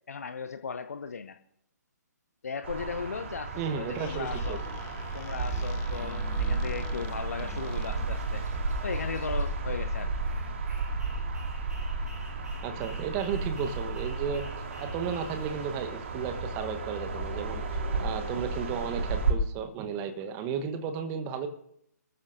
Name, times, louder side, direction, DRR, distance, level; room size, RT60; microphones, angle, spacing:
voice 1, 0.1-1.4 2.4-4.6 5.1-8.4 8.8-10.3, left 5 dB, 55° left, 8 dB, 0.9 m, -37 dB
sound 1, 2.6-19.3, right 3 dB, 45° right, 2.4 m, -33 dB
sound 2, 3.4-18.7, right 1 dB, 65° right, 7.7 m, -55 dB
voice 2, 3.6-4.6 12.6-14.5 14.8-17.6 18.0-21.5, right 6 dB, 20° right, 8 dB, 1.3 m, -33 dB
Squeak, 3.7-8.3, left 8 dB, 20° left, 1.1 m, -48 dB
28.5 x 14.0 x 2.7 m, 0.76 s
figure-of-eight pair, 135°, 10 cm